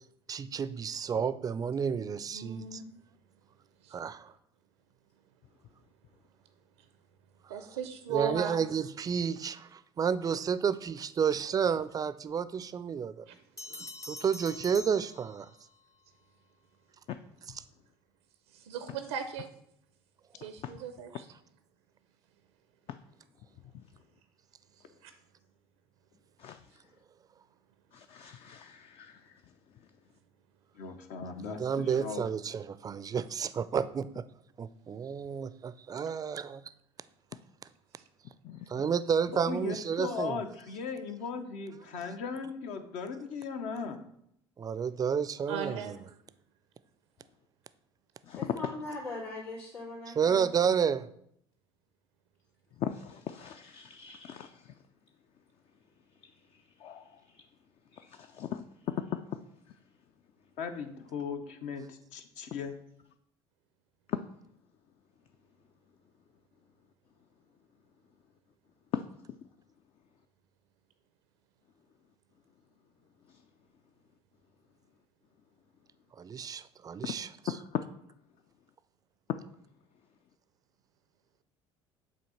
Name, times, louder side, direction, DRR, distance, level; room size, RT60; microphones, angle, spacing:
voice 1, 0.3-2.8 3.9-4.3 7.7-7.8 8.1-13.3 14.1-15.5 31.4-34.3 34.6-36.6 38.7-40.4 44.6-46.0 50.1-51.1 76.2-77.3, right 7 dB, 30° right, 15 dB, 0.4 m, -31 dB
voice 2, 2.3-2.8 3.8-4.0 7.5-8.6 13.3-13.4 13.7-13.8 18.5-19.5 20.4-21.2 25.0-25.1 36.1-36.2 45.5-46.0, right 8 dB, 80° right, 8 dB, 0.5 m, -37 dB
Bell, 13.6-15.8, left 2 dB, 25° left, 0.8 m, -45 dB
voice 3, 20.4-20.7 22.9-23.0 23.7-23.8 26.4-26.6 27.9-29.4 38.4-38.6 48.2-48.7 52.8-54.8 56.2-57.4 57.9-59.4 64.1-64.2 68.9-69.0 77.0-77.1 77.5-77.8, left 9 dB, 45° left, 8 dB, 0.4 m, -38 dB
voice 4, 30.7-32.2 39.3-44.0 60.6-62.7, left 5 dB, 65° left, 6 dB, 0.8 m, -38 dB
voice 5, 48.3-50.7, left 2 dB, 80° left, -6 dB, 2.8 m, -40 dB
7.5 x 2.8 x 5.6 m, 0.72 s
hypercardioid pair, 70°, 13 cm